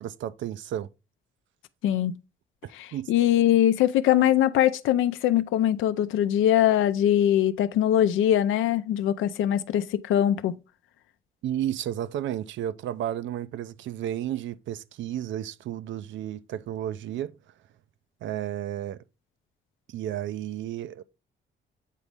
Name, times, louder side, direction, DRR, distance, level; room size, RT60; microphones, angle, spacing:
voice 1, 0.0-0.9 2.6-3.1 11.4-17.3 18.2-19.0 19.9-21.0, right 11 dB, 70° right, 0.5 m, -32 dB
voice 2, 1.8-2.1 2.7-10.6, left 11 dB, 80° left, 0.5 m, -22 dB
8.3 x 4.0 x 3.4 m
cardioid pair, 90°, 20 cm